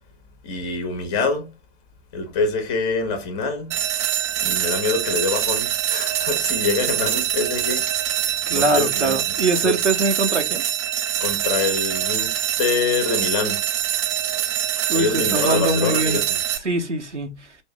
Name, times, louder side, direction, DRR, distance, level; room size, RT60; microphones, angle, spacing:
voice 1, 0.4-1.5 2.1-3.7 4.4-9.4 9.6-9.8 11.2-13.6 14.9-16.4, left 4 dB, 30° left, 1.3 m, -25 dB
sound 1, 3.7-16.6, right 11 dB, 25° right, 0.5 m, -24 dB
voice 2, 8.5-10.6 14.3-14.4 14.9-16.2 16.6-17.6, right 2 dB, 90° right, 0.9 m, -23 dB
5.2 x 2.7 x 3.4 m
figure-of-eight pair, 115°, 35 cm